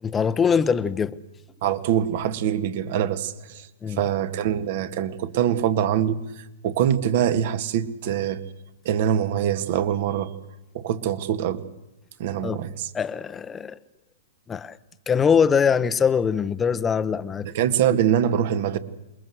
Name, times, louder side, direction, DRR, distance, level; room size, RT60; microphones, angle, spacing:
voice 1, 0.0-1.2 3.8-4.0 12.4-12.6 12.9-13.8 14.5-14.8 15.1-17.5, left 6 dB, 15° left, 1.0 m, -22 dB
voice 2, 1.6-3.7 4.0-8.4 8.9-10.3 10.7-11.6 12.2-12.9 17.4-18.8, right 10 dB, 55° right, 2.0 m, -24 dB
27.5 x 21.0 x 8.0 m
hypercardioid pair, 130°, 0 cm